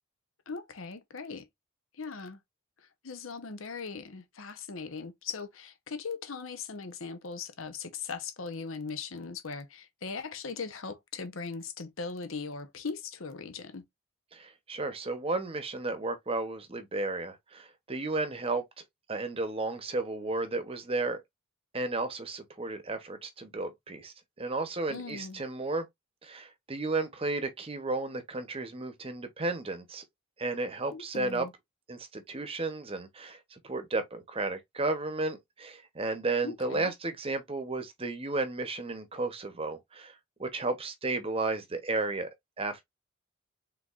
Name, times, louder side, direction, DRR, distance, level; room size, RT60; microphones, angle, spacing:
voice 1, 0.5-1.5 1.9-2.4 2.8-13.8 24.9-25.4 30.9-31.5 36.4-36.9, left 5 dB, 75° left, 0.9 m, -39 dB
voice 2, 14.3-18.8 19.1-21.2 21.7-25.9 26.2-30.0 30.4-31.5 31.9-40.1 40.4-42.3 42.6-42.8, right 3 dB, 30° right, 0.9 m, -33 dB
4.5 x 3.7 x 2.4 m
head